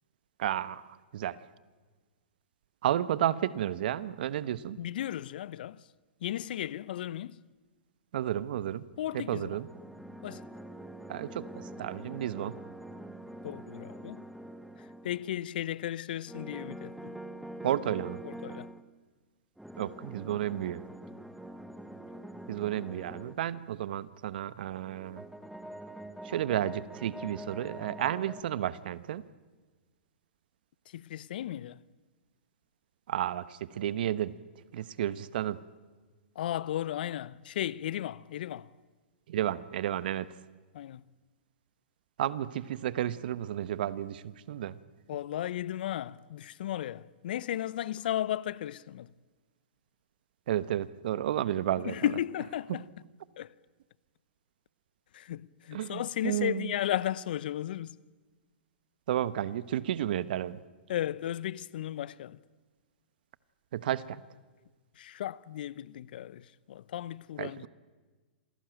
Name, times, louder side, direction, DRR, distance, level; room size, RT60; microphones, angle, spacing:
voice 1, 0.4-0.8 1.1-1.4 2.8-4.8 8.1-8.8 9.1-9.7 11.1-12.6 17.6-18.2 19.8-20.8 22.5-25.2 26.2-29.2 33.1-34.3 34.7-35.6 39.3-40.3 42.2-44.8 50.5-51.9 52.7-52.8 55.7-56.7 59.1-60.6 63.7-64.2 67.4-67.7, right 11 dB, 60° right, 1.0 m, -32 dB
voice 2, 4.8-5.8 6.2-7.4 9.0-9.6 10.2-10.4 13.4-14.2 15.0-17.1 18.2-18.7 30.9-31.8 36.4-38.7 40.7-41.0 45.1-49.1 51.8-52.9 53.4-53.5 55.1-58.0 60.9-62.4 65.0-67.7, left 12 dB, 60° left, 0.7 m, -35 dB
sound 1, 9.3-15.4 16.3-18.8 19.6-23.4 24.7-28.4, right 1 dB, ahead, 1.5 m, -45 dB
27.0 x 18.5 x 9.1 m
hypercardioid pair, 115°, 6 cm